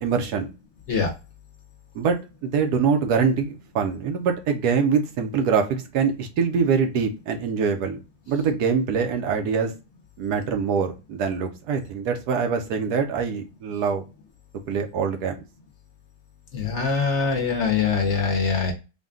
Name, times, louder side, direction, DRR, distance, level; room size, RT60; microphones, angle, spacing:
voice 1, 0.0-0.5 1.9-2.2 2.4-8.0 8.3-9.7 10.2-14.0 14.7-15.3, right 6 dB, 85° right, 1.3 m, -24 dB
voice 2, 16.5-18.7, left 5 dB, 55° left, 0.9 m, -23 dB
3.9 x 2.2 x 3.5 m
omnidirectional pair, 1.6 m